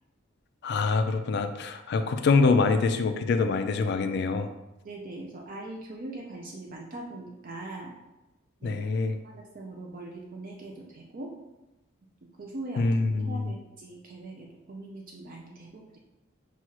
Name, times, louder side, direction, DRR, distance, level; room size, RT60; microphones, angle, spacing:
voice 1, 0.6-4.5 8.6-9.2 12.8-13.5, left 4 dB, 55° left, 8 dB, 0.3 m, -25 dB
voice 2, 4.8-8.0 8.6-8.8 9.3-11.3 12.4-12.8 13.1-16.0, right 2 dB, 45° right, -1 dB, 0.4 m, -41 dB
5.9 x 2.3 x 2.9 m, 0.97 s
head